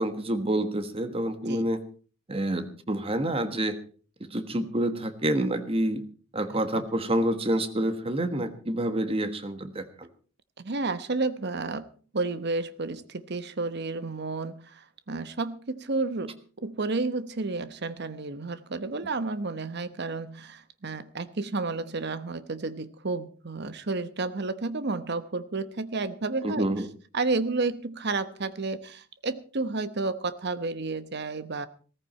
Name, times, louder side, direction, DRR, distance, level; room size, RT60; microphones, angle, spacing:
voice 1, 0.0-1.8 2.3-3.8 4.2-6.0 6.3-10.1 26.4-26.9, right 1 dB, 30° right, 9 dB, 1.4 m, -28 dB
voice 2, 10.6-11.9 12.1-26.7 27.1-31.7, right 3 dB, 55° right, 13 dB, 1.0 m, -31 dB
17.0 x 14.5 x 4.3 m, 0.40 s
head